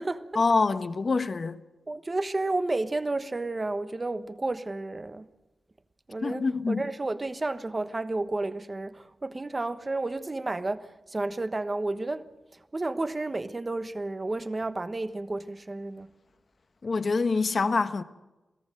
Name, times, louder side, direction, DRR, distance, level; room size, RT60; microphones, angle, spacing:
voice 1, 0.4-1.6 6.2-6.8 16.8-18.0, left 4 dB, 50° left, 1.1 m, -25 dB
voice 2, 1.9-5.3 6.1-12.3 12.7-16.1, right 2 dB, 30° right, 1.2 m, -31 dB
27.5 x 17.5 x 6.6 m
wide cardioid pair, 110°, 0 cm